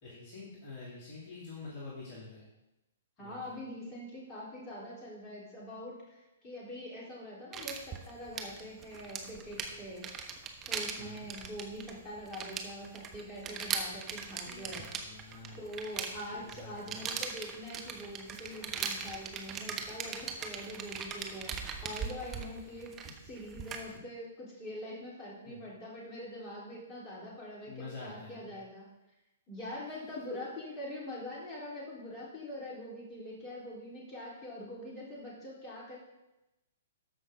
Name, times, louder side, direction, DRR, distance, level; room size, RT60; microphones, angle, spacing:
voice 1, 0.0-2.5 3.2-3.6 10.9-11.3 14.3-15.6 16.3-17.2 22.6-22.8 25.4-25.6 27.6-28.5, left 3 dB, 40° left, -6 dB, 2.7 m, -47 dB
voice 2, 3.2-10.1 10.7-14.9 15.6-21.5 21.8-23.0 23.2-28.9 29.5-36.0, left 1 dB, 20° left, -5 dB, 3.9 m, -44 dB
sound 1, 7.5-24.0, right 6 dB, 20° right, 1.0 m, -40 dB
13.5 x 5.7 x 3.8 m, 0.95 s
figure-of-eight pair, 115°, 0 cm